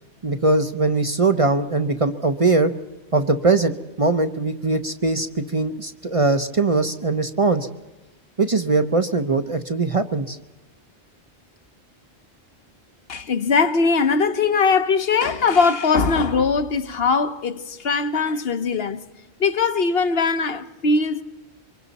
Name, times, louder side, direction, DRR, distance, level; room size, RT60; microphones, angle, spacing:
voice 1, 0.2-2.7 3.1-7.7 8.4-10.4, right 3 dB, 35° right, 0.8 m, -21 dB
voice 2, 13.1-19.0 19.4-21.2, left 4 dB, 65° left, 1.1 m, -20 dB
26.5 x 24.5 x 4.1 m
omnidirectional pair, 1.1 m